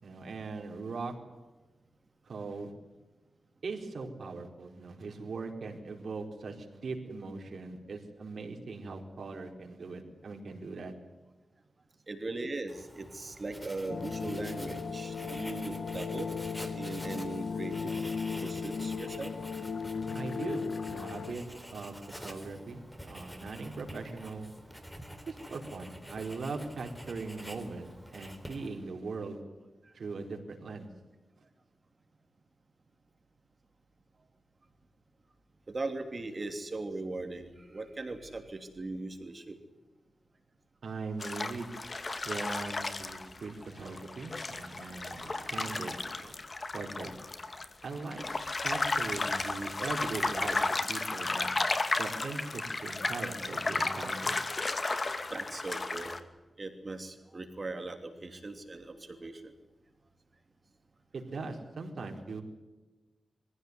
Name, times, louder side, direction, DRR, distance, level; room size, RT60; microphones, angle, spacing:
voice 1, 0.0-1.1 2.2-2.7 3.6-10.9 20.1-21.4 21.7-24.5 25.3-29.4 29.9-30.9 40.8-41.8 42.2-46.3 46.7-47.1 47.8-48.3 48.6-51.6 51.9-54.4 61.1-62.4, right 3 dB, 75° right, 2 dB, 4.4 m, -40 dB
voice 2, 12.1-16.3 16.7-17.9 18.4-19.3 35.7-39.6 55.3-56.1 56.6-59.5, right 2 dB, 40° right, 6 dB, 3.0 m, -39 dB
Writing, 12.7-28.9, equal, 5° left, 3.7 m, -47 dB
sound 1, 13.9-21.3, left 5 dB, 80° left, 1.4 m, -36 dB
sound 2, 41.2-56.2, left 3 dB, 40° left, 2.1 m, -33 dB
23.5 x 16.0 x 9.6 m, 1.2 s
wide cardioid pair, 90°, 0 cm